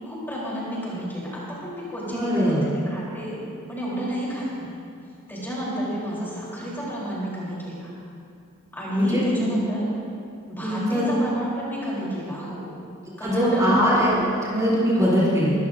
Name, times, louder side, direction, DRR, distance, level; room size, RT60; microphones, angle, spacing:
voice 1, 0.0-3.4 3.7-4.7 5.3-7.9 8.7-9.9 10.5-12.7 13.2-13.8 14.9-15.2, equal, 10° left, -7 dB, 3.8 m, -31 dB
voice 2, 2.1-2.7 8.9-9.6 10.6-11.1 13.2-15.5, equal, 15° right, -7 dB, 3.7 m, -21 dB
23.5 x 14.0 x 2.7 m, 2.5 s
head